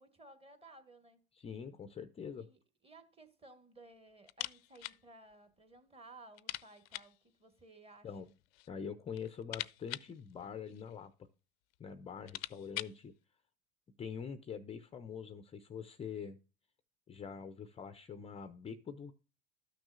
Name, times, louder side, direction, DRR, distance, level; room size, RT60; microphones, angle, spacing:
voice 1, 0.0-1.2 2.4-8.1, right 2 dB, 20° right, 1.4 m, -58 dB
voice 2, 1.3-2.5 8.0-8.3 8.7-11.3 11.8-13.1 14.0-16.4 17.1-19.1, left 6 dB, 20° left, 0.5 m, -44 dB
sound 1, 4.3-5.0 5.3-5.4 5.8-5.9 6.3-7.2 8.2-8.7 9.1-11.1 11.7-11.8 12.1-13.0, left 19 dB, 70° left, 0.5 m, -44 dB
13.0 x 6.1 x 2.4 m
hypercardioid pair, 90°, 32 cm